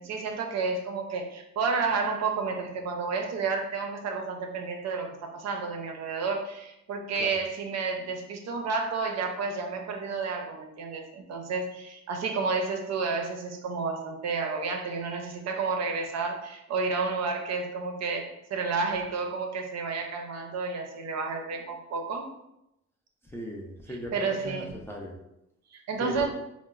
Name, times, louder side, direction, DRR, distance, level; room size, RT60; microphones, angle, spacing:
voice 1, 0.0-22.2 24.1-24.7 25.7-26.3, right 4 dB, 60° right, 3 dB, 0.5 m, -31 dB
voice 2, 23.3-25.1 26.0-26.3, equal, 10° left, -2 dB, 0.4 m, -37 dB
2.9 x 2.1 x 2.3 m, 0.85 s
cardioid pair, 90°, 30 cm